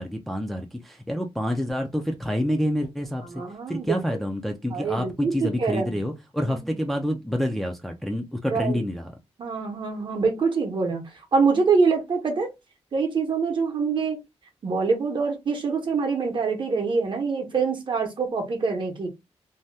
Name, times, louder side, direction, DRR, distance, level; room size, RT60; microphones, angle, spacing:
voice 1, 0.0-3.4 3.7-9.1, equal, ahead, 0.4 m, -28 dB
voice 2, 3.3-4.0 4.7-5.9 6.5-6.6 8.5-8.8 9.4-12.5 12.9-14.2 14.6-19.1, right 4 dB, 50° right, 0.8 m, -25 dB
2.7 x 2.2 x 3.3 m
wide cardioid pair, 150°, 11 cm